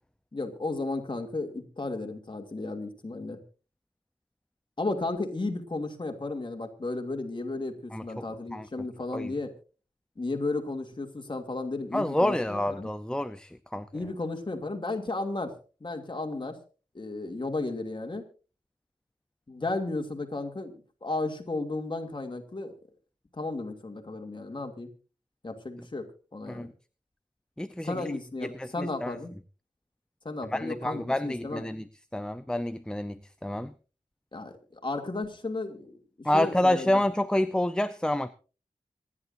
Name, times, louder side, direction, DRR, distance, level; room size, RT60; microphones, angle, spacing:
voice 1, 0.3-3.4 4.8-9.5 10.2-12.9 13.9-15.5 15.8-16.6 16.9-18.2 19.5-22.7 23.3-24.9 25.4-26.1 26.3-26.7 27.8-29.3 30.2-31.6 34.3-36.0 36.3-37.0, left 2 dB, 35° left, 2.7 m, -34 dB
voice 2, 7.9-8.2 8.5-8.7 9.1-9.3 11.9-13.8 26.5-26.7 27.6-28.1 28.4-29.2 30.5-31.8 32.1-33.7 36.2-38.3, left 1 dB, 5° left, 0.7 m, -28 dB
26.5 x 11.0 x 2.6 m
wide cardioid pair, 95°, 13 cm